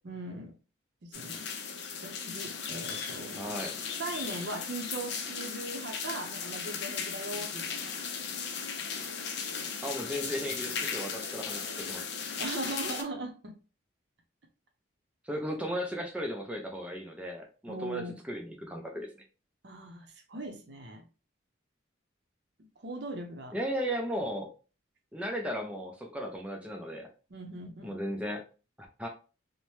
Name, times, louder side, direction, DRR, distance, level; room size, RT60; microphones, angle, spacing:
voice 1, 0.0-0.5 1.0-1.5 2.0-3.5 4.0-7.9 12.4-13.6 17.7-18.1 19.6-21.0 22.8-23.6 27.3-28.0, right 2 dB, 55° right, 0.6 m, -39 dB
sound 1, 1.1-13.0, left 6 dB, 55° left, 0.5 m, -37 dB
voice 2, 3.3-3.8 9.8-12.1 15.2-19.1 23.5-24.5 25.1-27.1 27.8-28.4 29.0-29.1, equal, 5° right, 0.5 m, -35 dB
2.8 x 2.1 x 3.1 m
head